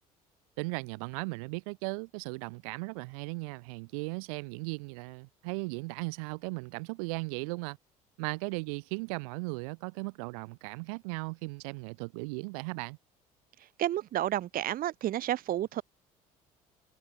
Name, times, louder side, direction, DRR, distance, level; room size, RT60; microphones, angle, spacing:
voice 1, 0.6-7.8 8.2-13.0, right 31 dB, 70° right, 2.9 m, -37 dB
voice 2, 13.6-15.8, right 13 dB, 50° right, 1.5 m, -31 dB
figure-of-eight pair, 60°, 19 cm